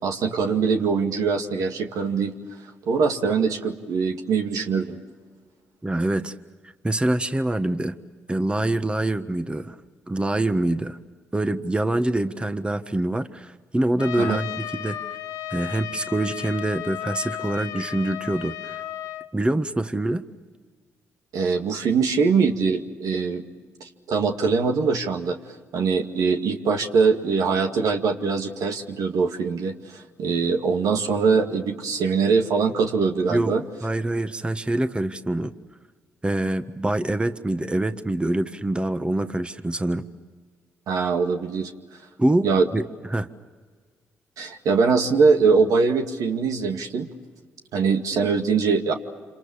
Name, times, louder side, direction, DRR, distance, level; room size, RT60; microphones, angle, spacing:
voice 1, 0.0-2.3 2.9-5.0 14.2-14.4 21.3-23.4 23.8-25.4 25.7-33.6 40.9-41.7 42.4-42.7 44.4-47.1 47.7-48.9, right 5 dB, 75° right, 4 dB, 2.1 m, -22 dB
voice 2, 5.8-6.3 6.8-7.9 8.3-9.8 10.1-11.0 11.3-15.0 15.5-18.8 19.3-20.2 33.3-33.5 33.8-35.5 36.2-40.1 42.2-42.5 42.7-43.3, right 1 dB, 15° right, 9 dB, 1.5 m, -25 dB
Trumpet, 14.0-19.3, left 12 dB, 80° left, 1.0 m, -34 dB
28.0 x 26.5 x 7.2 m, 1.5 s
supercardioid pair, 55°, 6 cm